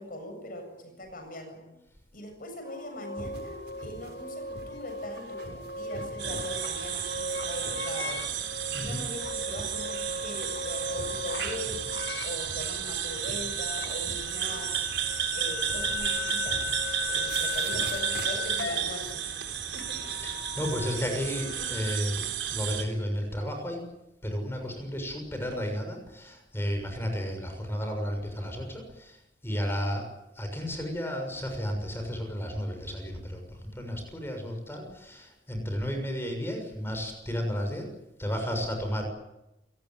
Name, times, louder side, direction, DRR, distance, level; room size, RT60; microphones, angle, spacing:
voice 1, 0.0-1.6 2.1-8.2 8.7-11.8 12.2-14.8 15.3-16.6 17.1-19.2 19.7-20.0, left 1 dB, 50° left, 6 dB, 7.5 m, -41 dB
sound 1, 2.6-22.0, left 4 dB, 70° left, 1.5 m, -38 dB
sound 2, 3.2-18.7, right 1 dB, 60° right, 6.8 m, -46 dB
sound 3, 6.2-22.8, right 10 dB, 80° right, 3.7 m, -32 dB
voice 2, 20.2-23.8 24.2-29.2 29.4-30.1 30.4-33.4 33.7-37.9 38.2-39.1, equal, 15° left, 4 dB, 6.6 m, -33 dB
28.5 x 19.0 x 9.3 m, 0.93 s
head